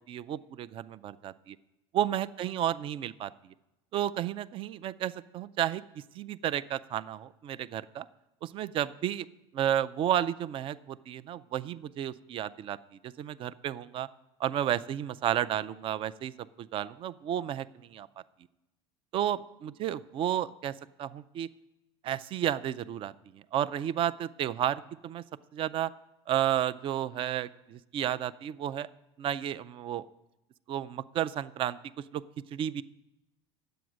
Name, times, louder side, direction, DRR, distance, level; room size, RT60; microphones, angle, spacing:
voice 1, 0.1-1.6 1.9-3.3 3.9-5.8 6.2-8.1 8.4-9.3 9.5-12.8 13.0-14.1 14.4-16.3 16.6-18.1 19.1-21.5 22.0-25.2 25.5-25.9 26.3-28.9 29.2-30.1 30.7-31.8 32.1-32.2 32.5-32.8, right 11 dB, 40° right, 17 dB, 0.4 m, -32 dB
9.2 x 7.8 x 6.2 m, 0.95 s
supercardioid pair, 115°, 14 cm